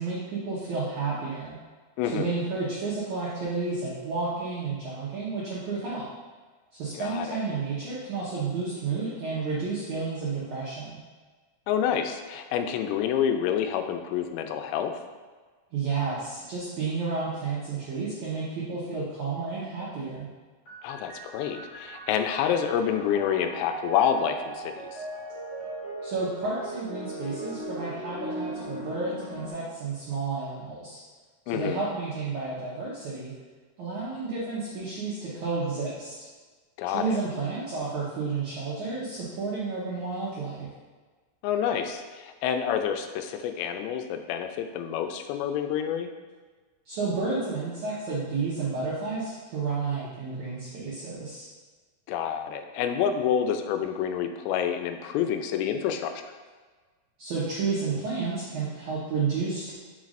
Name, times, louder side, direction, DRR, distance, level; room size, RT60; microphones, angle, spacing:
voice 1, 0.0-1.6 2.1-6.1 6.7-10.9 15.7-20.2 26.0-31.0 31.5-33.3 33.8-36.1 36.8-40.7 46.8-51.5 57.2-59.7, right 4 dB, 80° right, -8 dB, 1.7 m, -31 dB
voice 2, 2.0-2.3 7.0-7.4 11.7-14.9 20.8-25.1 31.5-31.8 36.8-37.2 41.4-46.1 52.1-56.3, left 8 dB, 90° left, 7 dB, 2.8 m, -28 dB
sound 1, 20.6-29.5, right 2 dB, 70° left, 1.2 m, -38 dB
7.2 x 5.7 x 2.5 m, 1.4 s
omnidirectional pair, 5.0 m